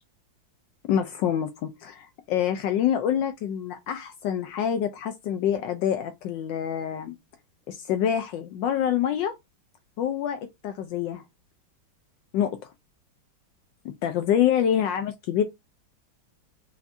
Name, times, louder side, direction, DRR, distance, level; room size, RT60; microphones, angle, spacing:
voice 1, 0.9-7.2 7.7-9.3 10.0-11.2 12.3-12.7 14.0-15.4, left 9 dB, 75° left, 1.2 m, -26 dB
5.9 x 2.6 x 2.5 m
omnidirectional pair, 2.1 m